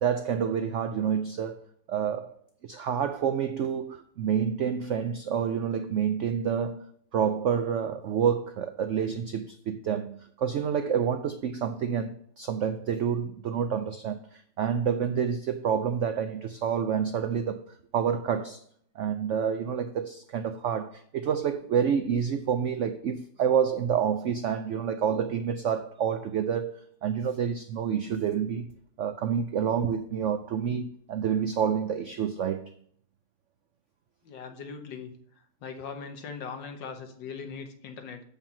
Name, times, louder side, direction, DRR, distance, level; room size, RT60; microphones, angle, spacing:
voice 1, 0.0-2.3 2.6-18.6 19.0-28.7 29.0-32.7, right 7 dB, 85° right, 0.6 m, -28 dB
voice 2, 34.3-35.1 35.6-38.2, left 5 dB, 90° left, 1.8 m, -40 dB
7.3 x 5.4 x 7.1 m
omnidirectional pair, 1.9 m